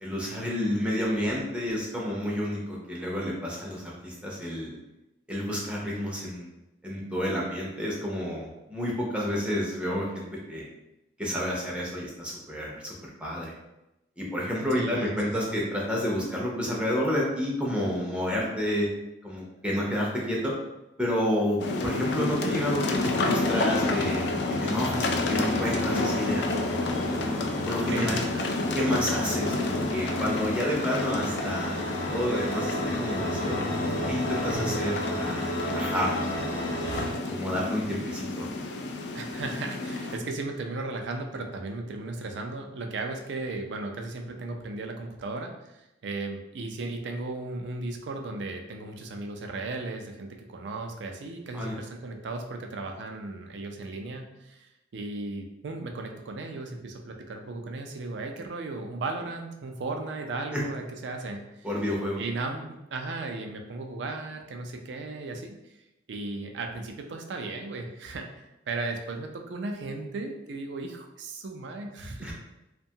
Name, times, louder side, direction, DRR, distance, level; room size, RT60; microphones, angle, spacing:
voice 1, 0.0-4.8 5.3-6.5 6.8-10.7 11.2-13.5 14.2-18.9 19.2-20.5 21.0-24.3 24.6-26.5 27.2-28.2 28.7-31.8 32.1-33.6 34.1-36.6 37.3-38.5 51.5-51.7 60.5-60.6 61.6-62.2 72.2-72.3, equal, 5° right, -4 dB, 0.4 m, -30 dB
voice 2, 14.7-15.2 15.4-15.6 27.9-28.4 34.5-34.8 39.1-61.7 62.2-65.7 66.1-72.3, right 3 dB, 70° right, 3 dB, 0.4 m, -36 dB
sound 1, 21.6-40.2, left 2 dB, 60° left, 0.3 m, -30 dB
sound 2, 22.9-37.1, equal, 80° left, 0.8 m, -34 dB
2.6 x 2.2 x 2.7 m, 0.92 s
head